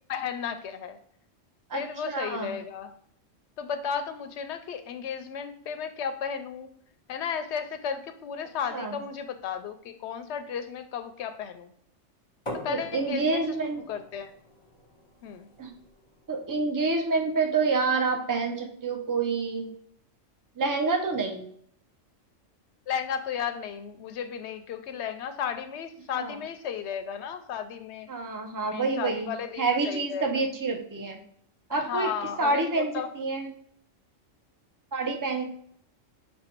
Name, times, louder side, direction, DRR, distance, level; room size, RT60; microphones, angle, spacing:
voice 1, 0.1-1.0 1.7-2.9 3.6-6.7 7.1-11.7 12.6-13.4 13.9-14.3 15.2-15.5 22.9-28.1 28.6-30.4 31.7-33.1, left 7 dB, 65° left, 8 dB, 0.8 m, -34 dB
voice 2, 1.7-2.6 8.7-9.0 12.7-13.8 15.6-15.7 16.3-19.7 20.6-21.4 26.2-26.4 28.1-31.2 31.7-32.1 32.4-33.5 34.9-35.4, right 4 dB, 30° right, 3 dB, 0.3 m, -28 dB
sound 1, 12.5-18.1, left 1 dB, 30° left, 0.8 m, -45 dB
5.3 x 2.2 x 4.4 m, 0.66 s
omnidirectional pair, 1.3 m